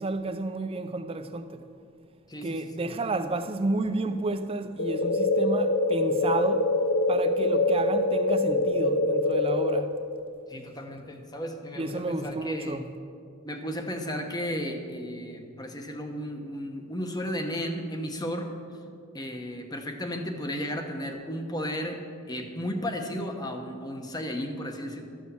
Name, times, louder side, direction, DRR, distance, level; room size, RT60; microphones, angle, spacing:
voice 1, 0.0-1.6 2.4-6.7 7.1-10.0 11.8-12.9, right 2 dB, 25° right, 0.5 m, -31 dB
voice 2, 2.3-2.9 10.5-12.8 13.4-18.5 19.1-22.0 22.3-25.0, equal, 20° left, 1.0 m, -34 dB
sound 1, 4.8-9.8, left 2 dB, 60° left, 0.6 m, -24 dB
13.0 x 6.3 x 7.0 m
head